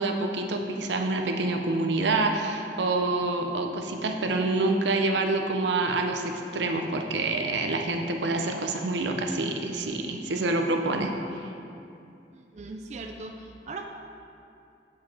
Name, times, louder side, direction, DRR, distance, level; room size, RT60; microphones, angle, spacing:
voice 1, 0.0-11.1, right 2 dB, 90° right, 4 dB, 0.6 m, -27 dB
voice 2, 12.3-13.8, right 3 dB, 40° right, 3 dB, 0.3 m, -39 dB
7.6 x 4.7 x 4.2 m, 2.6 s
head